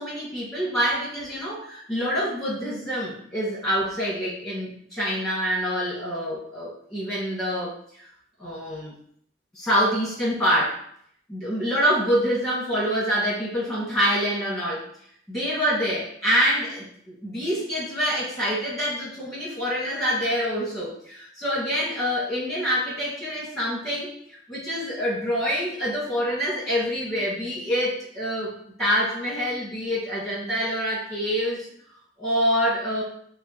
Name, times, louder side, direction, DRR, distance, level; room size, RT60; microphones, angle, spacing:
voice 1, 0.0-8.1 8.4-8.9 9.5-10.8 11.3-14.9 15.3-24.1 24.5-28.5 28.8-31.7 32.2-33.0, equal, ahead, -7 dB, 1.8 m, -26 dB
6.4 x 2.4 x 3.0 m, 0.67 s
head